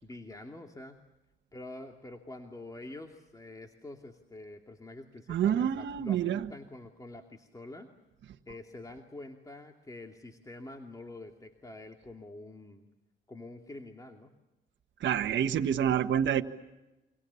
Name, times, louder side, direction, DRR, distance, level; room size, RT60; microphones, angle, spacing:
voice 1, 0.0-1.0 1.5-7.9 8.5-12.9 13.3-14.3, left 2 dB, 15° left, 4 dB, 2.6 m, -46 dB
voice 2, 5.3-6.5 15.0-16.4, right 9 dB, 65° right, 5 dB, 1.5 m, -27 dB
29.5 x 26.0 x 7.1 m, 1.0 s
cardioid pair, 90°, 20 cm